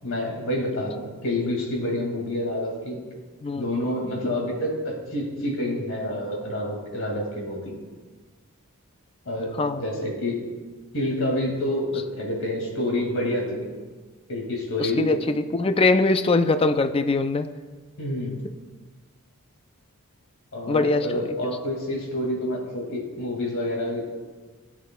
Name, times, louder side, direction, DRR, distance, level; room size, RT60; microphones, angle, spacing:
voice 1, 0.0-3.0 3.6-7.8 9.3-10.5 10.9-13.7 14.3-15.1 18.0-18.4 20.5-24.0, left 1 dB, 60° left, 0 dB, 2.1 m, -28 dB
voice 2, 14.8-17.5 20.7-21.2, left 3 dB, 25° left, 10 dB, 0.3 m, -22 dB
16.5 x 7.3 x 2.2 m, 1.4 s
head